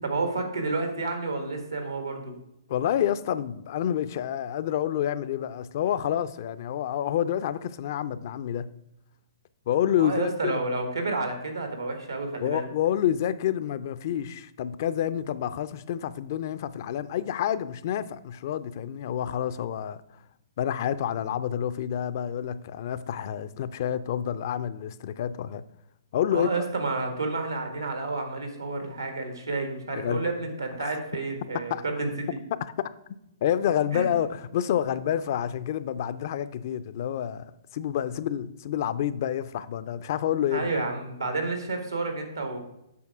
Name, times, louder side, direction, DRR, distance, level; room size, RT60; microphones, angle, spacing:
voice 1, 0.0-2.3 10.0-12.7 26.3-32.4 33.9-34.1 40.5-42.6, right 3 dB, 90° right, 1.7 m, -30 dB
voice 2, 2.7-8.7 9.7-10.5 12.4-20.0 20.6-25.6 26.1-26.7 29.9-30.3 30.8-30.9 31.7-31.8 32.8-32.9 33.4-37.4 37.7-40.7, left 10 dB, 50° left, 0.4 m, -28 dB
8.4 x 5.8 x 3.6 m
hypercardioid pair, 125°, 2 cm